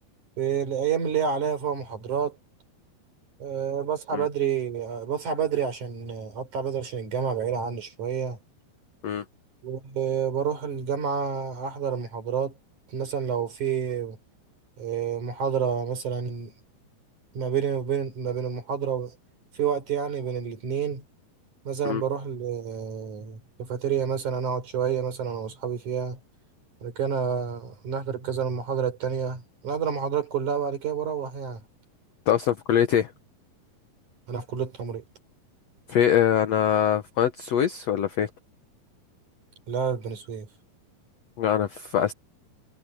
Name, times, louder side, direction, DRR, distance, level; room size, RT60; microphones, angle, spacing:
voice 1, 0.4-2.4 3.4-8.4 9.6-12.5 12.9-14.2 14.8-16.5 17.3-19.1 19.5-21.0 21.7-26.2 26.8-31.6 34.3-35.0 39.7-40.5, right 7 dB, 50° right, 5.6 m, -29 dB
voice 2, 32.3-33.1 35.9-38.3 41.4-42.1, left 9 dB, 80° left, 1.4 m, -23 dB
omnidirectional pair, 4.7 m